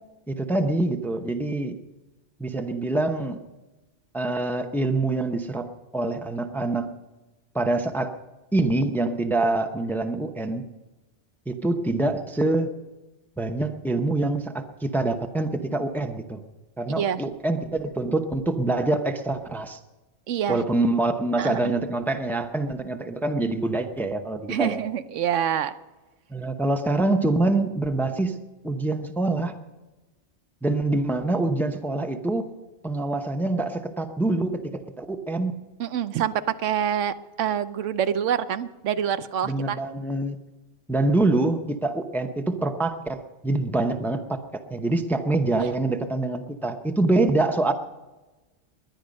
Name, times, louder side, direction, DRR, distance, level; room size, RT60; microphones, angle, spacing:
voice 1, 0.3-1.8 2.4-3.4 4.1-6.9 7.5-8.1 8.5-10.6 11.5-12.7 13.4-16.4 16.8-19.8 20.5-24.8 26.3-28.3 28.6-29.5 30.6-32.5 32.8-35.6 39.4-40.4 40.9-47.7, right 2 dB, ahead, 7 dB, 0.7 m, -25 dB
voice 2, 16.9-17.2 20.3-20.6 21.4-21.6 24.5-25.7 35.8-39.8 45.6-45.7, right 9 dB, 80° right, 13 dB, 1.0 m, -26 dB
20.5 x 10.5 x 5.3 m, 1.1 s
omnidirectional pair, 1.2 m